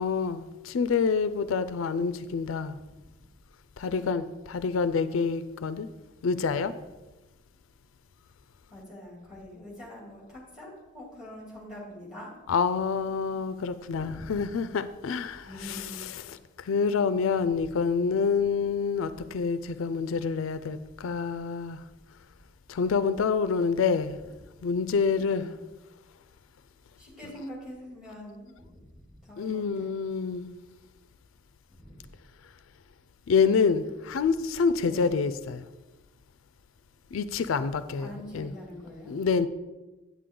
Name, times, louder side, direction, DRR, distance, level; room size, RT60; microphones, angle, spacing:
voice 1, 0.0-2.8 3.8-5.9 6.2-6.7 12.5-21.8 22.7-24.2 24.6-25.5 29.4-30.6 33.3-35.7 37.1-38.5 39.1-39.5, left 5 dB, 85° left, 0.4 m, -27 dB
voice 2, 8.7-12.3 14.0-14.4 15.4-16.0 17.6-17.7 25.2-25.5 27.0-28.8 29.2-29.9 31.7-31.9 34.8-35.2 38.0-39.2, left 1 dB, 5° right, 2.7 m, -44 dB
8.4 x 8.4 x 3.7 m
head